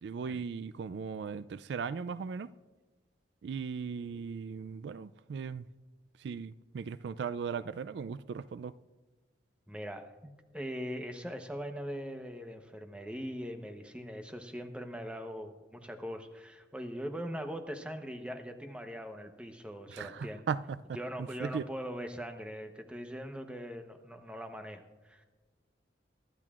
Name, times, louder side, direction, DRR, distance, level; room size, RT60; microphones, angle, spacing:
voice 1, 0.0-2.5 3.4-5.6 6.2-8.7 19.9-20.8 21.4-21.6, right 6 dB, 70° right, 0.3 m, -37 dB
voice 2, 9.7-20.4 20.9-25.3, equal, 5° right, 0.9 m, -41 dB
24.0 x 12.0 x 2.4 m
head